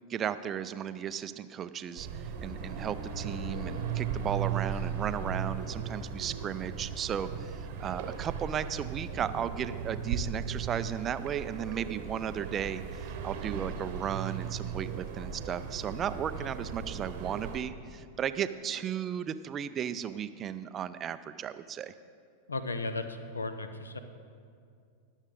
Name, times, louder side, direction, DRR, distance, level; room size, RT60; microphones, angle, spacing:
voice 1, 0.1-21.9, right 9 dB, 25° right, 13 dB, 0.4 m, -35 dB
sound 1, 2.0-17.6, right 7 dB, 50° right, 0.9 m, -37 dB
Bowed string instrument, 2.3-9.4, left 12 dB, 40° left, 0.7 m, -51 dB
voice 2, 22.5-24.0, left 3 dB, 75° left, 10 dB, 0.7 m, -35 dB
20.5 x 7.2 x 3.6 m, 2.3 s
figure-of-eight pair, 90°, 0 cm